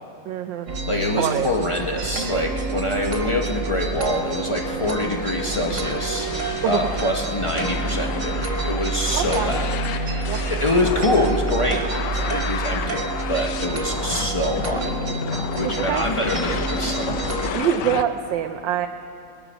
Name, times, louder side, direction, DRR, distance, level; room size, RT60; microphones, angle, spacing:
voice 1, 0.3-0.7 1.2-1.5 6.6-6.9 9.1-9.5 10.3-10.4 15.6-16.0 17.5-18.9, right 10 dB, 90° right, 6 dB, 1.3 m, -24 dB
sound 1, 0.7-17.5, right 3 dB, 45° right, 1.5 m, -28 dB
voice 2, 0.9-6.3 6.6-9.7 10.5-14.9 15.6-17.2, left 1 dB, 50° left, 1 dB, 0.3 m, -25 dB
sound 2, 1.2-18.0, left 9 dB, 75° left, 1.2 m, -33 dB
19.5 x 11.0 x 5.1 m, 2.6 s
omnidirectional pair, 2.0 m